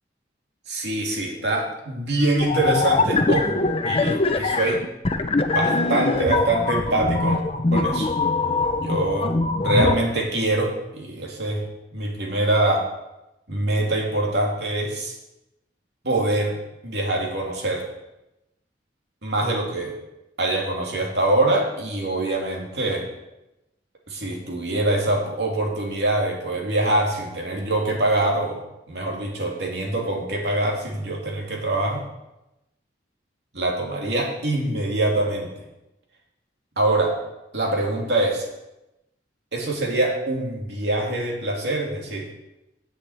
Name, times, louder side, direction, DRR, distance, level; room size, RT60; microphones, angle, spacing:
voice 1, 0.7-3.6 3.9-4.8 5.5-7.4 7.7-8.1 8.8-9.3 9.6-11.6 11.9-12.9 13.5-15.1 16.0-16.6 16.8-17.9 19.2-19.9 20.4-23.0 24.1-28.6 28.9-32.0 33.5-35.5 36.8-37.1 37.5-38.4 39.5-42.3, right 2 dB, 70° right, -1 dB, 2.7 m, -24 dB
sound 1, 2.4-10.0, left 3 dB, 30° left, 0.7 m, -22 dB
7.8 x 7.2 x 8.1 m, 0.92 s
head